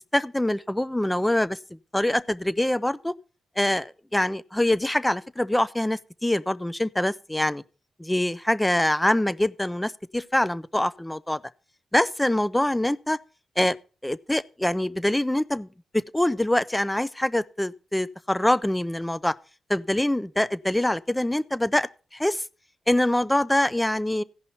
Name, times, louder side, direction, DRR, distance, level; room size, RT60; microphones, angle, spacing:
voice 1, 0.1-1.6 1.9-3.1 3.6-7.6 8.0-11.4 11.9-13.2 13.6-13.8 14.0-15.7 15.9-19.3 19.7-22.4 22.9-24.2, left 1 dB, 10° left, 0.5 m, -24 dB
16.5 x 5.5 x 4.2 m
cardioid pair, 75°, 0 cm